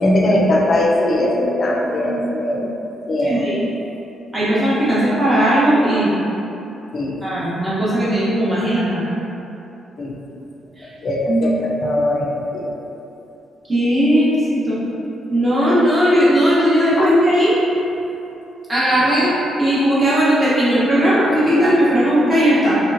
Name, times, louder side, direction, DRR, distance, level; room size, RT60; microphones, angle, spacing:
voice 1, 0.0-2.7 3.1-3.4 6.9-7.2 10.0-10.1 11.0-12.7 17.0-17.1, left 1 dB, 40° left, -2 dB, 0.4 m, -19 dB
voice 2, 3.2-3.5 4.3-6.1 7.2-9.0 10.8-10.9 11.3-11.5 13.7-14.8 15.3-17.5 18.7-19.3 19.6-22.8, equal, 20° right, -10 dB, 0.9 m, -17 dB
3.1 x 2.9 x 2.5 m, 2.9 s
cardioid pair, 140°, 0 cm